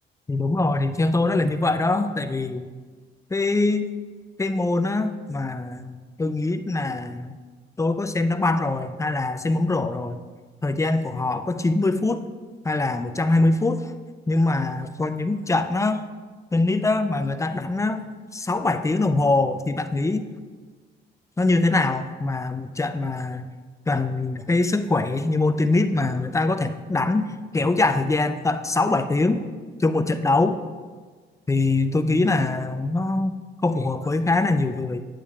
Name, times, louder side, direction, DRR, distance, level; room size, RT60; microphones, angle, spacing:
voice 1, 0.3-2.7 3.3-3.9 4.4-5.9 6.2-7.4 7.8-10.2 10.6-12.2 12.6-13.9 14.3-16.0 16.5-18.0 18.3-20.2 21.4-23.4 23.9-29.4 29.8-30.6 31.5-35.0, left 2 dB, 15° left, 9 dB, 0.4 m, -23 dB
8.9 x 8.2 x 2.3 m, 1.4 s
cardioid pair, 90°, 20 cm